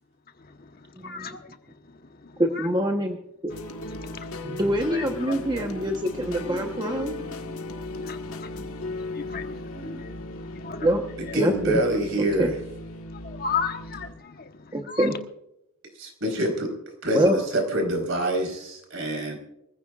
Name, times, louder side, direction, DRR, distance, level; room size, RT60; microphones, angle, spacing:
voice 1, 0.3-2.7 3.8-4.6 4.9-5.7 6.9-7.0 8.0-10.9 11.3-11.4 12.1-12.2 13.1-15.1, left 6 dB, 45° left, 1.1 m, -37 dB
voice 2, 2.4-3.2 4.4-7.3 9.9-10.0 10.8-11.0 11.3-11.8 12.4-12.5 14.7-15.1 17.1-17.4, right 1 dB, 20° right, 1.0 m, -25 dB
sound 1, 3.5-14.1, left 2 dB, 90° left, 1.5 m, -37 dB
voice 3, 11.3-12.5 16.0-16.7 17.0-19.4, right 1 dB, 60° right, 4.2 m, -26 dB
24.5 x 15.5 x 2.4 m
head